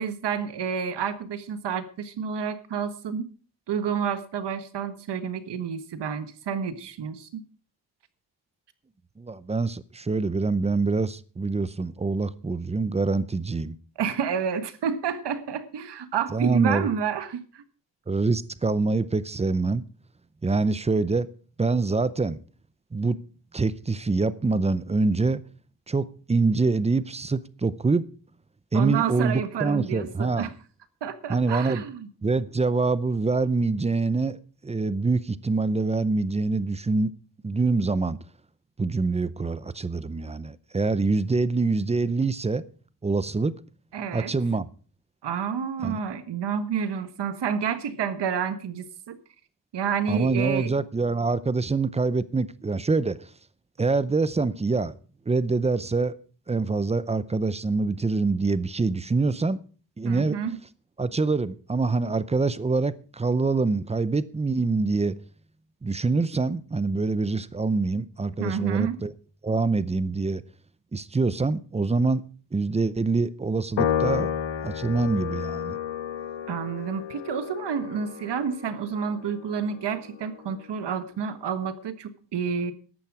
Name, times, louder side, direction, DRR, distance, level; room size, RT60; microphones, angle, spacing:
voice 1, 0.0-3.3 3.7-7.4 14.0-17.6 28.7-30.5 31.0-32.1 43.9-44.3 45.2-49.2 49.7-50.7 60.0-60.6 68.4-69.0 76.5-82.7, right 7 dB, 65° right, 1.5 m, -29 dB
voice 2, 9.2-13.8 16.3-16.9 18.1-19.8 20.4-21.3 21.6-22.4 22.9-23.2 23.5-25.4 25.9-28.1 28.7-30.5 31.3-31.8 32.2-37.1 37.4-38.2 38.8-42.6 43.0-43.6 44.1-44.7 45.8-46.0 50.1-53.2 53.8-54.9 55.3-56.2 56.5-59.6 60.0-60.4 61.0-65.2 65.8-69.1 69.4-70.4 70.9-72.2 72.5-74.3 74.6-75.8, right 3 dB, 15° right, 0.6 m, -25 dB
Piano, 73.8-80.3, left 9 dB, 80° left, 1.3 m, -31 dB
14.0 x 11.0 x 4.8 m
wide cardioid pair, 155°, 44 cm